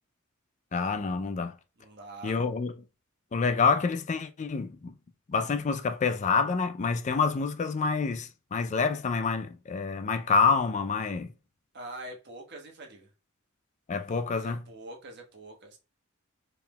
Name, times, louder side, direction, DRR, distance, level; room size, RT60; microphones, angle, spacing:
voice 1, 0.7-1.5 2.2-2.7 3.3-4.9 5.3-11.3 13.9-14.6, left 4 dB, 35° left, 0.4 m, -27 dB
voice 2, 1.8-2.4 11.7-13.1 14.4-15.8, right 2 dB, 55° right, 1.3 m, -44 dB
4.6 x 3.7 x 2.2 m
head